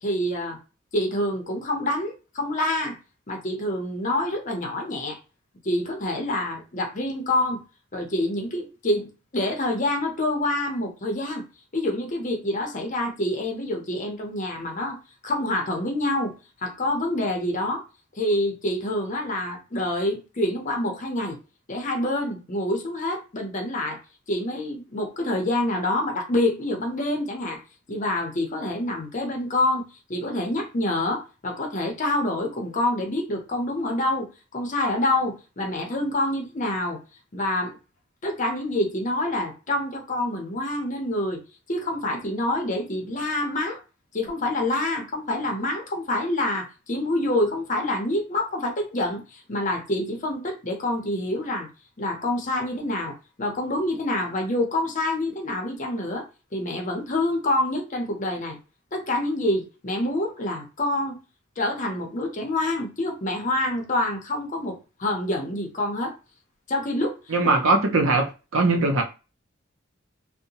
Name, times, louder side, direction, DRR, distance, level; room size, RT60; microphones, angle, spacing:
voice 1, 0.0-0.6 0.9-3.0 3.3-5.2 5.6-7.6 7.9-11.4 11.7-16.4 16.6-17.8 18.2-21.4 21.7-24.0 24.3-27.6 27.9-29.8 30.1-34.3 34.5-37.0 37.3-37.8 38.2-41.4 41.7-43.8 44.1-51.7 52.0-56.2 56.5-58.6 58.9-61.2 61.6-66.1 66.7-67.2, left 1 dB, 40° left, 0.7 m, -27 dB
voice 2, 67.3-69.0, right 3 dB, 75° right, 0.6 m, -21 dB
2.7 x 2.1 x 2.8 m
head